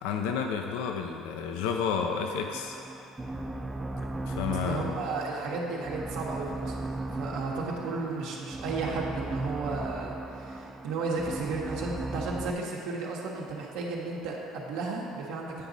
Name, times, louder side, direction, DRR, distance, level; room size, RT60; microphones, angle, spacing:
voice 1, 0.0-2.8 4.3-4.9, left 6 dB, 90° left, 3 dB, 0.5 m, -31 dB
sound 1, 2.5-12.5, right 2 dB, 10° right, 0.5 m, -37 dB
voice 2, 4.6-6.8 7.1-15.7, right 3 dB, 80° right, -2 dB, 1.2 m, -34 dB
8.8 x 5.0 x 4.0 m, 2.7 s
supercardioid pair, 100°, 0 cm